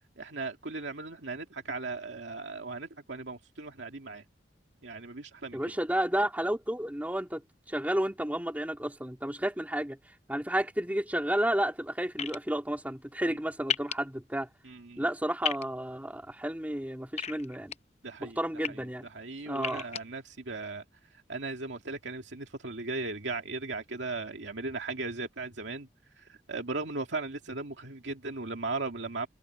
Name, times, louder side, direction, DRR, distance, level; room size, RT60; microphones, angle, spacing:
voice 1, 0.2-4.2 4.8-5.7 13.3-13.4 14.6-15.1 18.0-18.4 18.7-20.8 21.3-25.9 26.2-29.3, right 3 dB, 85° right, 2.2 m, -37 dB
voice 2, 5.5-7.4 7.7-10.0 10.3-14.5 15.0-17.7 18.2-19.1 19.5-19.8, right 1 dB, 10° right, 2.6 m, -31 dB
sound 1, 12.2-12.4 13.7-13.9 15.4-15.6 17.2-17.8 18.4-18.7 19.6-20.0, left 7 dB, 40° left, 0.7 m, -32 dB
head